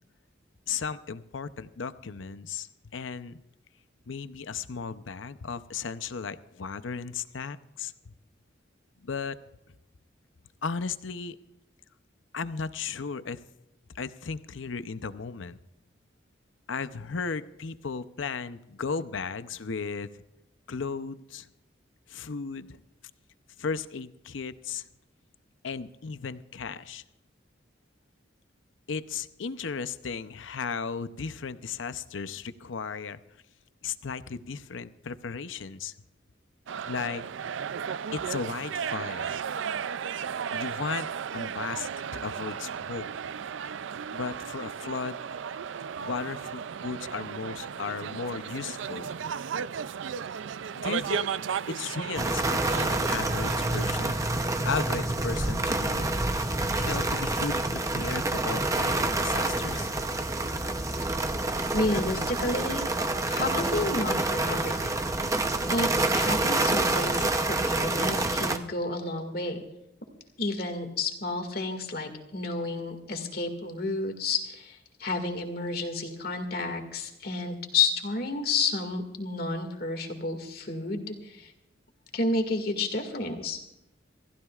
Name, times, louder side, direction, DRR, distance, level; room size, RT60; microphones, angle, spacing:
voice 1, 0.7-3.4 4.1-8.1 9.0-9.4 10.6-11.4 12.3-13.4 13.9-15.6 16.7-20.2 20.7-21.5 22.1-22.8 23.6-24.9 25.6-27.0 28.9-33.4 33.8-35.9 36.9-37.2 38.1-39.4 40.5-41.1 41.3-43.1 44.1-45.2 46.0-49.1 50.7-51.3 51.7-54.2 54.6-56.1 56.4-59.9, left 5 dB, 80° left, 12 dB, 0.7 m, -35 dB
sound 1, 36.7-53.9, right 7 dB, 80° right, 0.4 m, -35 dB
sound 2, 52.2-68.6, right 2 dB, 15° right, 0.7 m, -27 dB
voice 2, 61.7-62.9 63.3-65.0 65.7-69.6 70.4-81.5 82.1-83.6, left 3 dB, 50° left, 5 dB, 2.1 m, -31 dB
27.5 x 15.0 x 2.4 m, 0.88 s
head